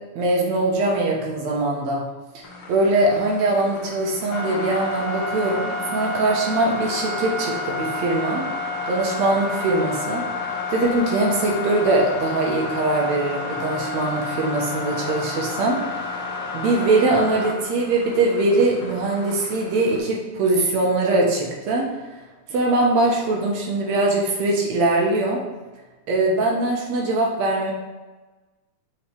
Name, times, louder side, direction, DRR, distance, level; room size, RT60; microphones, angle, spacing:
voice 1, 0.2-2.0 2.3-2.4 2.7-8.4 8.9-16.2 16.5-21.8 22.5-25.4 26.1-27.7, right 2 dB, 70° right, -2 dB, 2.1 m, -22 dB
sound 1, 2.4-20.0, left 3 dB, 80° left, 1.0 m, -30 dB
7.2 x 4.8 x 3.3 m, 1.2 s
omnidirectional pair, 3.5 m